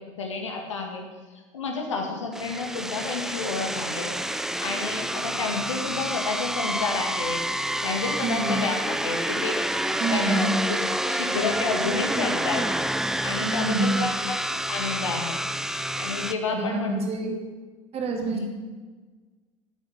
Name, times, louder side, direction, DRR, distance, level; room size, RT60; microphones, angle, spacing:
voice 1, 0.2-1.1 1.5-12.7 12.9-15.4 15.9-17.0 17.3-17.4 18.3-18.5, left 4 dB, 75° left, 3 dB, 2.1 m, -30 dB
sound 1, 2.3-16.3, right 1 dB, 5° right, 0.6 m, -28 dB
voice 2, 8.2-8.6 10.0-10.6 13.4-14.1 16.5-17.3 17.9-18.5, right 2 dB, 40° right, 2 dB, 2.9 m, -27 dB
10.5 x 8.5 x 8.4 m, 1.4 s
figure-of-eight pair, 65°, 16 cm